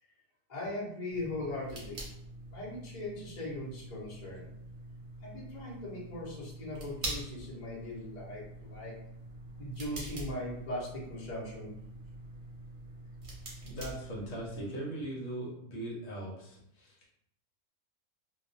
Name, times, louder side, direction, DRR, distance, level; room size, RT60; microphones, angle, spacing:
voice 1, 0.5-2.0 2.5-4.5 5.2-8.9 9.6-11.7, left 1 dB, 40° left, -6 dB, 0.8 m, -39 dB
sound 1, 1.1-14.6, right 1 dB, 45° right, 0.8 m, -45 dB
voice 2, 13.6-17.1, right 1 dB, 75° left, -3 dB, 1.0 m, -40 dB
2.3 x 2.3 x 2.6 m, 0.76 s
omnidirectional pair, 1.4 m